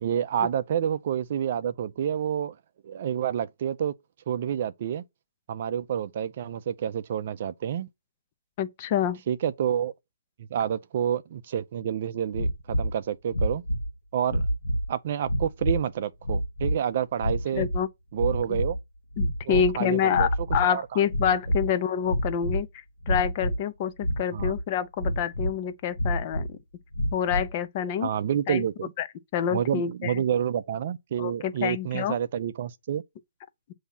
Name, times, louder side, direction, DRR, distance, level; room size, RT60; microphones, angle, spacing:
voice 1, 0.0-2.6 2.8-3.9 4.3-5.0 5.5-7.9 9.3-9.9 10.5-13.6 14.1-14.4 14.9-17.7 18.1-18.8 19.5-20.3 20.6-21.0 24.3-24.6 28.0-28.9 29.5-33.0, right 9 dB, 45° right, 0.5 m, -28 dB
voice 2, 8.6-9.2 17.5-17.9 19.2-26.6 27.1-28.1 28.5-28.7 29.0-29.1 29.3-30.2 31.2-32.2, left 8 dB, 35° left, 0.6 m, -27 dB
sound 1, 12.3-12.9 13.3-13.9 14.3-14.9 15.2-15.8 16.2-16.8 17.2-17.9 18.1-18.8 19.1-19.8 20.1-20.7 21.1-21.7 22.0-22.6 23.0-23.6 24.0-24.6 25.0-25.6 26.0-26.5 26.9-27.5, equal, 90° left, 1.4 m, -28 dB
7.0 x 2.8 x 5.5 m
hypercardioid pair, 150°, 0 cm